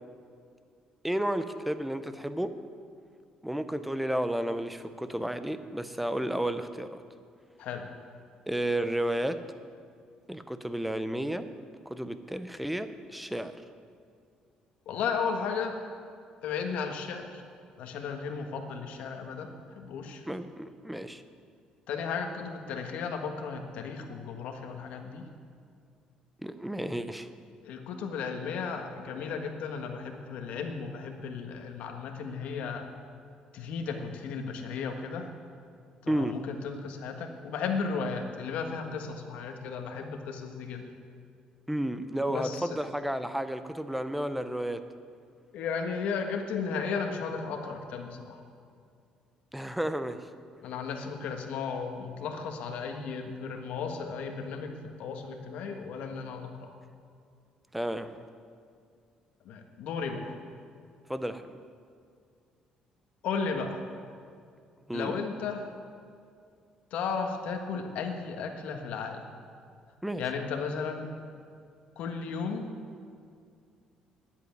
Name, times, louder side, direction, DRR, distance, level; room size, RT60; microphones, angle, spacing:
voice 1, 1.0-2.5 3.4-7.0 8.5-9.4 10.3-11.5 11.9-13.5 20.3-21.2 26.4-27.3 36.1-36.3 41.7-44.8 49.5-50.2 57.7-58.2 61.1-61.6 64.9-65.2 70.0-70.3, right 1 dB, 5° right, 10 dB, 0.6 m, -32 dB
voice 2, 14.9-15.8 16.4-17.4 17.8-19.5 19.7-20.2 21.9-25.2 27.6-32.8 33.5-35.3 36.0-40.8 42.3-42.7 45.5-48.4 50.6-54.7 55.0-56.7 59.4-60.4 63.2-63.8 64.9-65.7 66.9-69.2 70.2-71.1 72.0-72.7, left 5 dB, 75° left, 4 dB, 1.5 m, -34 dB
10.5 x 8.2 x 9.2 m, 2.3 s
cardioid pair, 140°, 2 cm